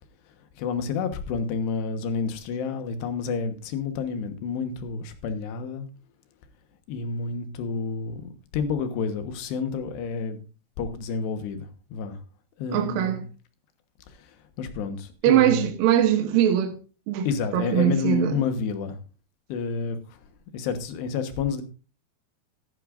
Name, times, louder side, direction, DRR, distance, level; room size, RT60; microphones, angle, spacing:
voice 1, 0.6-5.9 6.9-10.5 10.8-12.2 12.6-13.2 14.1-15.7 17.2-19.0 19.5-20.2 20.5-21.6, left 5 dB, 75° left, 3.4 m, -30 dB
voice 2, 12.7-13.2 15.2-16.8 17.1-17.3 17.5-18.3, right 11 dB, 70° right, 2.4 m, -21 dB
14.5 x 12.0 x 2.5 m
omnidirectional pair, 5.0 m